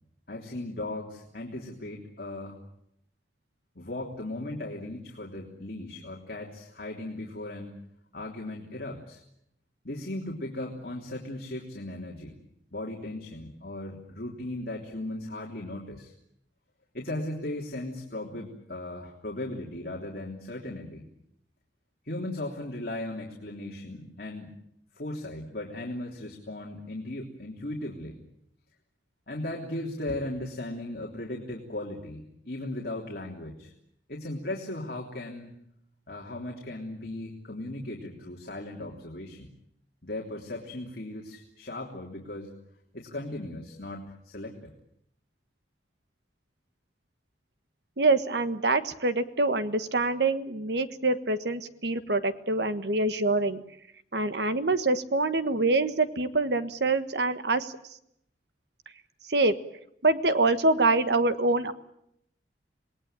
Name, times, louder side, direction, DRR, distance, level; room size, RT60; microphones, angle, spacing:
voice 1, 0.3-2.6 3.7-7.7 8.1-9.2 9.8-12.4 12.7-16.1 16.9-21.1 22.0-24.5 24.9-28.2 29.3-33.7 34.1-35.5 36.1-39.5 40.0-42.5 42.9-44.7, left 1 dB, 55° left, -1 dB, 3.4 m, -37 dB
voice 2, 48.0-53.6 54.1-57.7 59.3-59.5 60.0-61.7, right 2 dB, 70° right, 11 dB, 1.5 m, -25 dB
27.5 x 19.5 x 9.0 m, 0.75 s
head